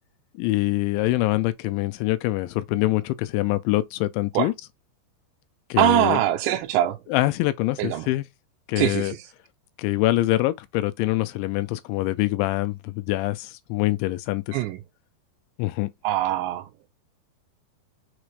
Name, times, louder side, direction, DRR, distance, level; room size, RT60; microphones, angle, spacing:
voice 1, 0.4-4.5 5.7-6.2 7.1-8.3 8.7-9.1 9.8-14.6 15.6-15.9, left 17 dB, 85° left, 2.9 m, -24 dB
voice 2, 5.8-7.0 7.8-8.1 8.8-9.2 14.5-14.8 16.0-16.6, right 13 dB, 80° right, 2.7 m, -22 dB
6.8 x 2.5 x 3.1 m
omnidirectional pair, 5.3 m